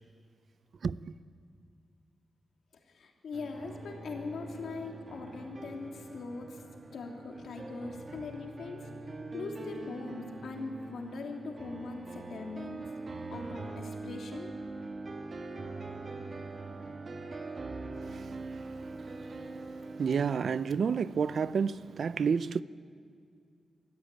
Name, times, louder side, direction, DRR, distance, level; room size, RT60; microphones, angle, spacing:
voice 1, 2.9-6.6 6.9-8.9 9.3-12.9 13.3-14.5, left 4 dB, 80° left, 3.0 m, -41 dB
sound 1, 3.3-20.4, right 3 dB, 40° right, 1.5 m, -43 dB
voice 2, 18.0-19.4 19.9-22.6, right 6 dB, 65° right, 0.5 m, -31 dB
24.5 x 14.0 x 9.0 m
wide cardioid pair, 115°, 0 cm